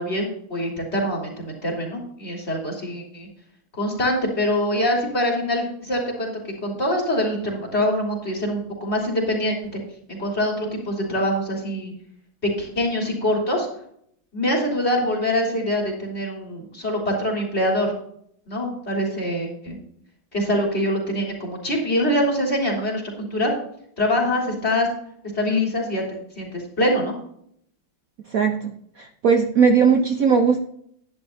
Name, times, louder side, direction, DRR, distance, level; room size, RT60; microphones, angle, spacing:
voice 1, 0.0-3.3 3.7-9.8 10.1-11.9 12.6-13.7 14.3-17.9 18.5-19.8 20.3-23.5 24.0-24.9 25.3-27.1, left 1 dB, 30° left, -2 dB, 3.7 m, -24 dB
voice 2, 29.2-30.6, right 6 dB, 55° right, 4 dB, 1.1 m, -17 dB
11.0 x 11.0 x 2.8 m, 0.68 s
omnidirectional pair, 2.1 m